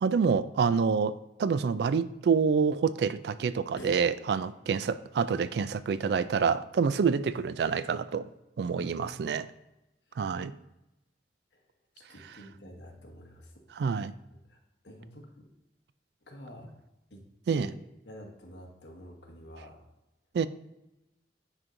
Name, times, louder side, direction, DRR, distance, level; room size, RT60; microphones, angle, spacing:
voice 1, 0.0-8.3 8.6-9.5 10.2-10.5 13.8-14.1 17.5-17.7 20.3-20.5, right 5 dB, 70° right, 15 dB, 0.3 m, -27 dB
voice 2, 3.7-4.2 8.7-9.4 10.1-10.3 11.9-13.6 14.3-14.6 14.8-15.5 16.3-16.7 17.1-17.2 17.5-17.7 18.0-19.8, equal, 80° left, 1 dB, 1.3 m, -48 dB
9.8 x 4.5 x 2.6 m, 0.92 s
head